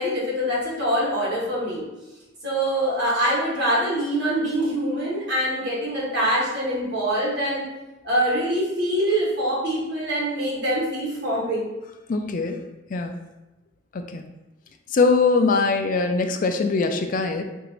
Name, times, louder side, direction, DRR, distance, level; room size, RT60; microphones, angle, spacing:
voice 1, 0.0-1.8 2.4-7.6 8.0-11.7, right 1 dB, 60° right, -6 dB, 1.4 m, -24 dB
voice 2, 12.1-12.6 12.9-13.2 13.9-14.3 14.9-17.4, left 4 dB, 45° left, 6 dB, 0.3 m, -22 dB
2.9 x 2.6 x 4.4 m, 1.0 s
head